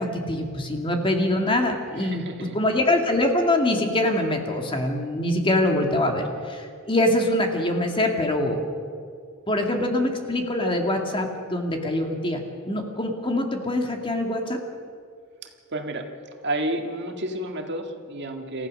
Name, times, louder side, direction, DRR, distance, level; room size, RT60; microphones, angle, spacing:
voice 1, 0.1-2.2 2.5-8.6 9.5-14.6, left 1 dB, 25° left, 3 dB, 2.2 m, -24 dB
voice 2, 2.0-2.6 15.4-16.1 16.4-18.7, right 1 dB, 55° right, 4 dB, 1.9 m, -31 dB
28.0 x 15.0 x 6.5 m, 2.3 s
head